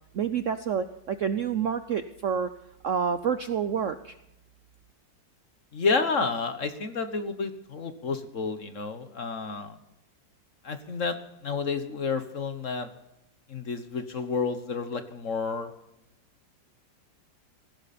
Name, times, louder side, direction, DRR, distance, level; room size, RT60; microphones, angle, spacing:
voice 1, 0.1-2.5 2.8-4.1, right 7 dB, 60° right, 10 dB, 0.8 m, -28 dB
voice 2, 5.7-9.8 10.6-11.2 11.4-12.9 13.5-15.7, left 4 dB, 45° left, 9 dB, 1.5 m, -30 dB
17.0 x 15.5 x 4.2 m, 0.87 s
omnidirectional pair, 2.0 m